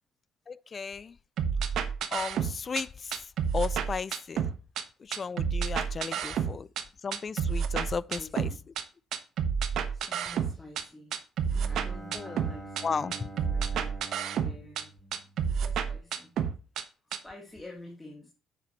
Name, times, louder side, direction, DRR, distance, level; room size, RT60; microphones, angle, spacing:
voice 1, 0.5-1.2 2.1-3.3 3.5-4.5 5.0-6.7 7.0-8.5 12.1-12.4 12.8-13.3, left 5 dB, 30° left, 0.3 m, -34 dB
sound 1, 1.4-2.8 3.1-4.8 5.1-6.8 7.1-8.8 9.1-10.8 11.1-12.8 13.1-14.8 15.1-16.8 17.1-17.2, right 7 dB, 60° right, 1.1 m, -30 dB
voice 2, 5.9-6.4 7.8-8.6 9.6-11.2 11.7-13.9 14.3-14.9 15.4-16.3 17.1-18.3, left 1 dB, 10° left, 1.6 m, -49 dB
Bowed string instrument, 11.5-15.9, right 2 dB, 10° right, 3.7 m, -46 dB
9.2 x 7.3 x 3.0 m
cardioid pair, 140°, 0 cm